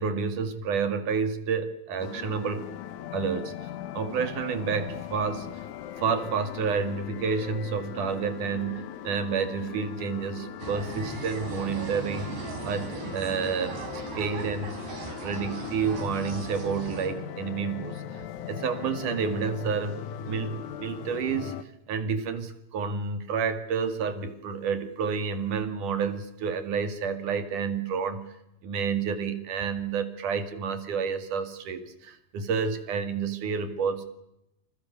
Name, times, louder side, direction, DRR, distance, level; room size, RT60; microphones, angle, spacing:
voice 1, 0.0-2.7 3.1-3.7 3.9-5.6 6.0-12.3 12.6-14.7 15.2-18.0 18.5-21.6 21.9-28.3 28.6-34.0, right 6 dB, 55° right, 9 dB, 3.4 m, -30 dB
sound 1, 2.0-21.6, left 10 dB, 70° left, 1.9 m, -39 dB
sound 2, 10.6-17.1, right 4 dB, 75° right, 6.4 m, -38 dB
29.0 x 27.5 x 7.0 m, 0.85 s
omnidirectional pair, 4.9 m